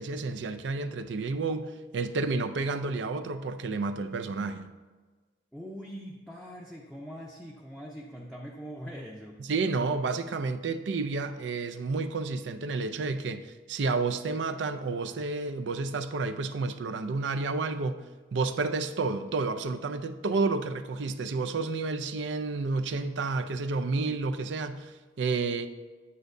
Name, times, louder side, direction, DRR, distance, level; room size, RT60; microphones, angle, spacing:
voice 1, 0.0-4.7 9.4-18.0 18.3-25.7, right 3 dB, 75° right, 0.5 m, -30 dB
voice 2, 5.5-9.4 20.3-20.4, equal, ahead, 0.6 m, -42 dB
8.4 x 8.0 x 2.6 m
head